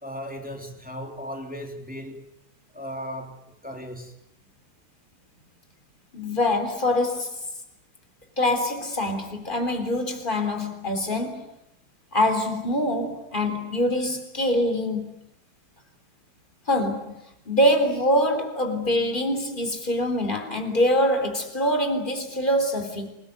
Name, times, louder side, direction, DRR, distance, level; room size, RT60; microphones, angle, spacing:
voice 1, 0.0-2.3 2.7-3.4 3.6-4.2, equal, 5° right, 3.3 m, -36 dB
voice 2, 6.1-7.4 8.4-11.5 12.1-15.1 16.7-17.1 17.5-23.1, left 1 dB, 30° left, 3.9 m, -24 dB
27.0 x 20.0 x 9.4 m
omnidirectional pair, 1.8 m